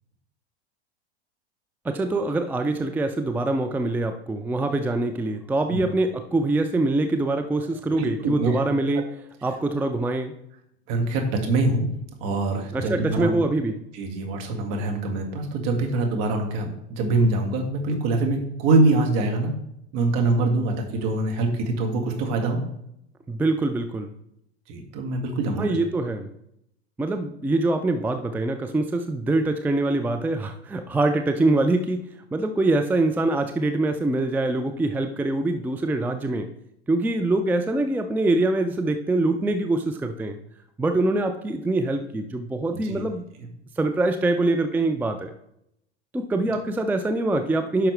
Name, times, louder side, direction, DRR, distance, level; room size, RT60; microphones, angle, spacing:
voice 1, 1.8-9.1 9.4-10.3 12.7-13.8 23.3-24.1 25.6-26.3 27.0-32.0 32.3-36.5 36.9-40.4 40.8-43.2 43.8-45.3 46.1-47.9, right 2 dB, 5° right, 7 dB, 0.4 m, -24 dB
voice 2, 8.0-8.6 10.9-13.3 13.9-19.5 19.9-22.6 24.7-25.8 42.8-43.0, right 2 dB, 50° right, 2 dB, 2.0 m, -24 dB
10.0 x 5.7 x 3.3 m, 0.77 s
hypercardioid pair, 85°, 33 cm